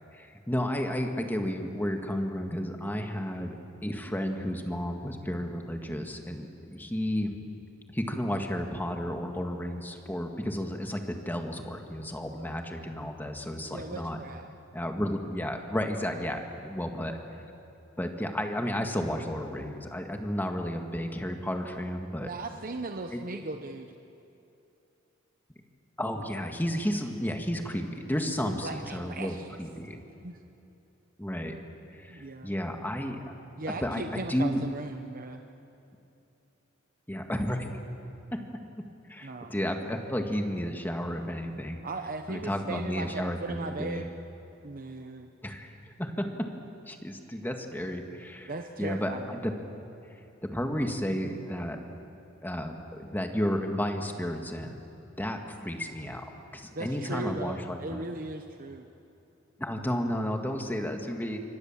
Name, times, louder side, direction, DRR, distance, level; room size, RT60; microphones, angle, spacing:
voice 1, 0.1-3.5 3.8-7.3 7.9-14.2 14.7-17.2 18.0-22.3 23.1-23.4 26.0-30.0 31.2-31.5 31.9-33.2 33.8-34.6 37.1-37.8 38.3-38.4 39.1-41.8 42.3-44.0 45.4-45.7 46.0-46.5 46.9-48.5 48.8-49.5 50.5-51.8 52.4-54.8 55.2-56.2 56.5-58.0 59.6-61.4, equal, 10° left, 4 dB, 1.8 m, -32 dB
voice 2, 13.7-14.5 22.2-23.9 28.4-29.6 29.9-30.4 32.1-32.5 33.6-35.4 39.2-39.6 41.8-44.1 44.6-45.3 48.5-49.3 56.7-58.9, right 2 dB, 45° right, 5 dB, 1.0 m, -38 dB
27.5 x 25.0 x 7.4 m, 2.8 s
head